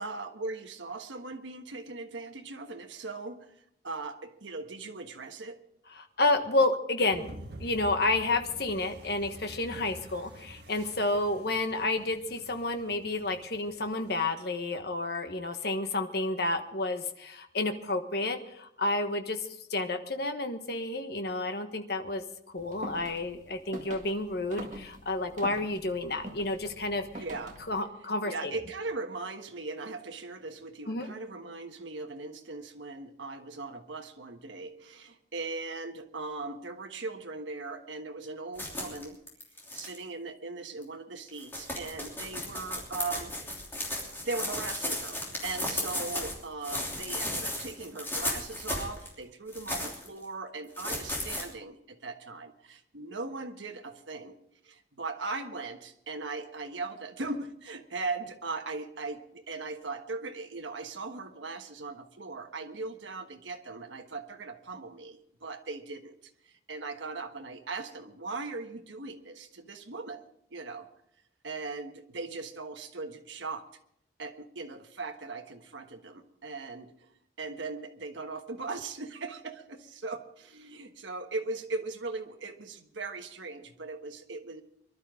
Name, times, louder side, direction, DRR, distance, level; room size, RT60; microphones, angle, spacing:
voice 1, 0.0-3.5 3.8-5.6 27.1-27.6 28.3-39.2 39.7-43.4 43.8-43.9 44.2-54.4 54.6-66.2 66.4-70.9 71.4-73.7 74.2-77.1 77.4-84.6, right 3 dB, 80° right, 5 dB, 1.4 m, -39 dB
voice 2, 6.2-7.3 7.6-19.4 19.7-22.2 22.5-27.1 27.7-28.5 30.9-31.1, left 2 dB, 55° left, 6 dB, 1.3 m, -30 dB
sound 1, 7.1-14.1, right 1 dB, 60° right, 1.5 m, -48 dB
sound 2, 22.6-27.8, right 1 dB, 40° right, 1.9 m, -45 dB
sound 3, 38.6-40.0 40.8-40.9 41.3-46.3 46.6-49.1 49.5-50.1 50.8-51.4, left 1 dB, 10° left, 3.0 m, -35 dB
23.5 x 12.0 x 3.7 m, 0.73 s
head